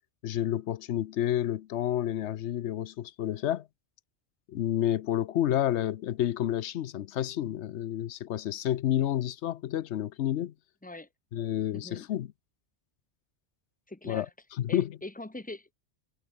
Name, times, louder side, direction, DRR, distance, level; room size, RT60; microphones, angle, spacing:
voice 1, 0.2-3.7 4.5-10.5 11.3-12.3 14.1-14.3 14.6-14.9, left 11 dB, 90° left, 1.0 m, -30 dB
voice 2, 11.7-12.1 13.9-14.3 14.7-15.7, left 2 dB, 10° left, 1.3 m, -42 dB
omnidirectional pair, 1.1 m